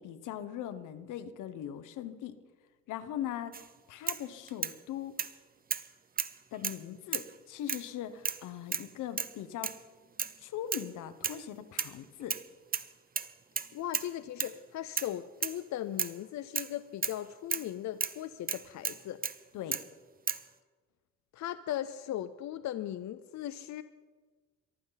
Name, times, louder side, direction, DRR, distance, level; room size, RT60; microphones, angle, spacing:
voice 1, 0.0-2.4 2.9-5.1 6.5-9.8 10.4-12.4 19.5-19.8, left 10 dB, 85° left, 12 dB, 1.1 m, -40 dB
sound 1, 3.5-3.7 4.1-4.8 5.2-5.3 5.7-5.9 6.2-6.8 7.1-7.4 7.7-7.9 8.3-8.4 8.7-8.9 9.2-9.4 9.6-9.8 10.2-10.4 10.7-10.9 11.2-11.4 11.8-12.4 12.7-12.9 13.2-14.1 14.4-14.6 15.0-15.2 15.4-15.6 16.0-16.2 16.6-16.7 17.0-17.2 17.5-17.7 18.0-18.2 18.5-19.4 19.7-19.9 20.3-20.5, right 6 dB, 30° right, 0.9 m, -34 dB
voice 2, 13.7-19.2 21.3-23.8, left 12 dB, 65° left, 13 dB, 0.6 m, -38 dB
22.5 x 14.5 x 4.0 m, 1.5 s
cardioid pair, 90°, 30 cm